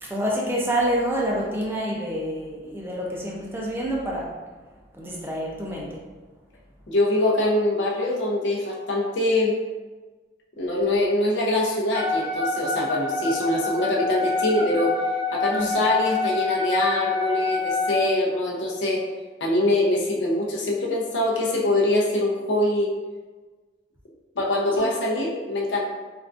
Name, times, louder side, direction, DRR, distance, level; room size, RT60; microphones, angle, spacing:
voice 1, 0.0-4.4 4.9-6.0 15.5-15.7, equal, 10° right, -3 dB, 0.4 m, -27 dB
voice 2, 6.9-9.6 10.6-15.0 15.3-19.0 19.4-22.9 24.4-25.8, left 1 dB, 80° left, -2 dB, 0.6 m, -23 dB
Wind instrument woodwind instrument, 11.9-18.0, left 4 dB, 35° left, 1.1 m, -26 dB
3.5 x 2.3 x 2.4 m, 1.3 s
head